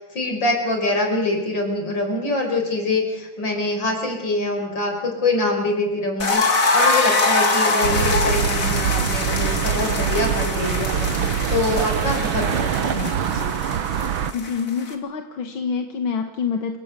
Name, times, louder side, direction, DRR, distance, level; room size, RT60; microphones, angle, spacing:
voice 1, 0.0-13.5, left 2 dB, 65° left, 3 dB, 6.0 m, -25 dB
sound 1, 6.2-14.9, left 3 dB, 40° left, 3.0 m, -24 dB
sound 2, 7.8-14.3, right 8 dB, 85° right, 1.9 m, -24 dB
voice 2, 14.3-16.8, left 6 dB, 90° left, 5 dB, 2.3 m, -26 dB
28.5 x 17.5 x 8.3 m, 1.1 s
omnidirectional pair, 2.1 m